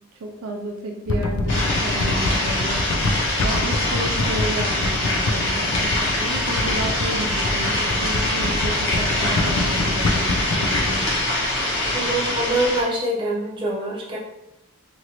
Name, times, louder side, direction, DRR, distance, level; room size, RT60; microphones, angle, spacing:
voice 1, 0.2-2.9 3.4-11.1, right 1 dB, 85° right, 1 dB, 0.4 m, -32 dB
sound 1, 1.1-11.2, left 2 dB, 85° left, 0.4 m, -26 dB
sound 2, 1.5-12.8, left 1 dB, 60° left, 1.0 m, -24 dB
voice 2, 11.9-14.2, right 1 dB, 20° right, -6 dB, 0.8 m, -24 dB
2.9 x 2.6 x 2.9 m, 0.91 s
head